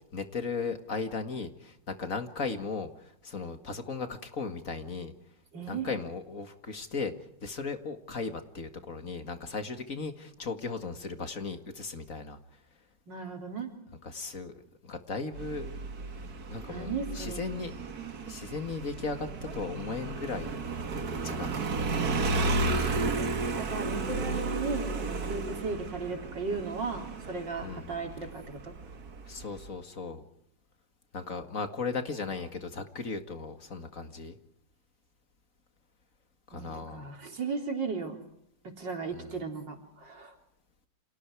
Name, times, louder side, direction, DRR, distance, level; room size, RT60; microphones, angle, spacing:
voice 1, 0.1-5.1 5.7-7.1 7.4-12.4 14.0-15.8 16.5-17.7 18.2-19.3 19.5-20.6 21.2-21.6 27.6-27.9 29.3-30.2 31.1-34.4 36.5-37.1 39.1-39.4, left 4 dB, 50° left, 8 dB, 2.3 m, -36 dB
voice 2, 5.5-5.9 13.1-13.7 16.7-17.4 22.0-22.8 23.2-23.3 23.5-28.7 36.5-38.2 38.8-39.8 40.0-40.3, right 4 dB, 85° right, 3 dB, 4.4 m, -36 dB
Motorcycle, 15.4-29.7, right 3 dB, 60° right, 2.2 m, -33 dB
30.0 x 27.5 x 4.8 m, 0.72 s
omnidirectional pair, 1.9 m